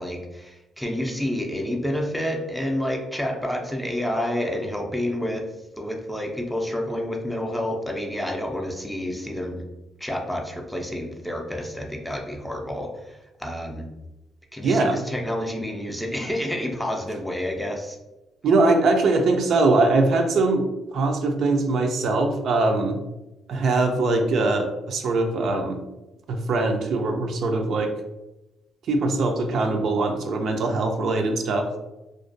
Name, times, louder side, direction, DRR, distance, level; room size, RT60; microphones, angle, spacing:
voice 1, 0.0-5.5 5.8-9.6 10.0-13.9 14.5-18.0, left 1 dB, 5° left, 2 dB, 0.4 m, -29 dB
voice 2, 14.6-15.0 18.4-20.7 20.9-23.0 23.5-25.8 26.3-27.9 28.9-31.7, right 3 dB, 65° right, 4 dB, 0.3 m, -22 dB
2.4 x 2.2 x 2.4 m, 0.99 s
cardioid pair, 90°, 0 cm